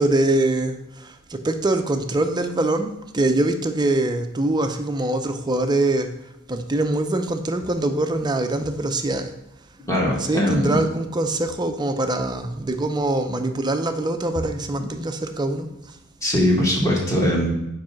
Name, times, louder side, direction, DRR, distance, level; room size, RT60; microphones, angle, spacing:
voice 1, 0.0-6.1 6.5-9.3 10.1-15.7, right 2 dB, 20° right, 6 dB, 0.5 m, -23 dB
voice 2, 9.9-10.8 16.2-17.5, left 1 dB, 15° left, -3 dB, 1.6 m, -20 dB
5.2 x 4.7 x 5.8 m, 0.87 s
head